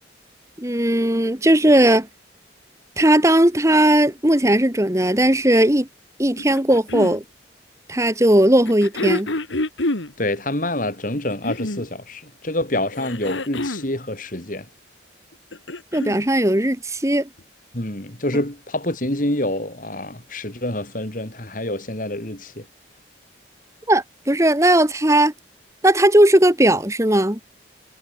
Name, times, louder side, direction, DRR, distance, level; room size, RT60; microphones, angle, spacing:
voice 1, 0.6-2.1 3.0-5.9 6.2-7.2 7.9-9.3 15.9-17.3 23.9-25.3 25.8-27.4, right 1 dB, 15° right, 1.6 m, -17 dB
sound 1, 6.4-7.2 8.7-10.1 11.1-11.9 12.9-13.9 15.3-16.2 17.4-17.5, left 2 dB, 85° left, 2.5 m, -27 dB
voice 2, 10.2-14.7 17.7-22.6, left 1 dB, 45° left, 3.5 m, -27 dB
head